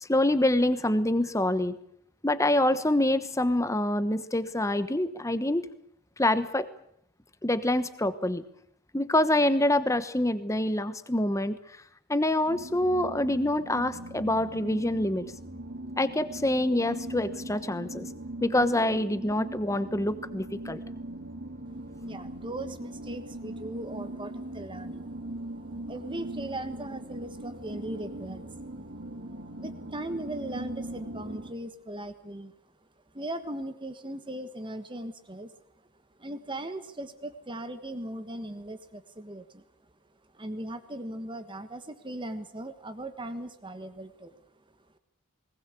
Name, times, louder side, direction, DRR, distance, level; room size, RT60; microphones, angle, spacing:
voice 1, 0.1-1.8 2.2-5.7 6.2-6.7 7.4-8.4 8.9-11.6 12.1-15.3 16.0-18.1 18.4-20.8, left 1 dB, 15° left, 13 dB, 1.1 m, -26 dB
sound 1, 12.5-31.5, right 1 dB, 50° right, 2.1 m, -40 dB
voice 2, 22.0-25.1 25.7-28.5 29.6-32.5 33.1-35.5 36.2-39.6 40.3-44.4, right 1 dB, 20° right, 10 dB, 1.4 m, -38 dB
20.0 x 19.5 x 8.3 m, 0.68 s
head